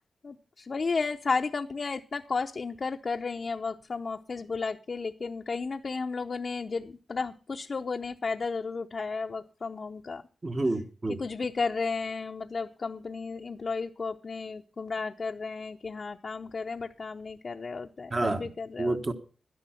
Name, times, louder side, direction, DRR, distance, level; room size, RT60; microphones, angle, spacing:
voice 1, 0.2-10.2 11.2-19.0, left 4 dB, 50° left, 0.7 m, -33 dB
voice 2, 10.4-11.2 18.1-18.5 18.8-19.1, right 2 dB, 35° right, 1.4 m, -28 dB
12.5 x 11.0 x 5.8 m
cardioid pair, 65°, 0 cm